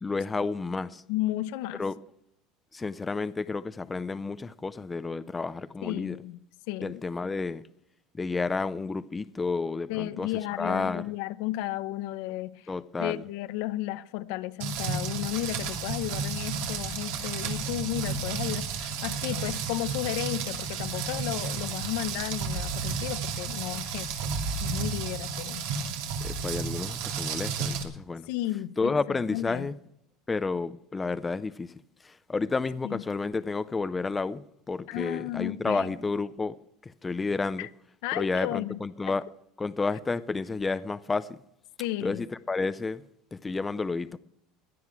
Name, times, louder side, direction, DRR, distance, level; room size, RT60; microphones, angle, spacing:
voice 1, 0.0-1.0 1.8-1.9 2.7-6.2 6.8-7.6 8.2-10.3 10.6-11.0 12.7-13.2 26.2-28.3 28.8-29.7 30.3-31.7 32.0-36.6 37.0-37.7 38.2-39.2 39.6-41.4 42.0-43.0 43.3-44.2, left 4 dB, 15° left, 0.5 m, -31 dB
voice 2, 1.1-1.8 5.8-6.4 6.7-7.0 9.9-12.7 13.0-24.3 24.6-25.7 28.3-29.0 29.3-29.7 32.8-33.0 34.9-35.9 37.6-37.7 38.0-38.8 41.8-42.2, left 15 dB, 70° left, 0.7 m, -33 dB
Rain, 14.6-27.8, right 5 dB, 80° right, 2.7 m, -32 dB
17.0 x 11.0 x 4.8 m
supercardioid pair, 140°, 0 cm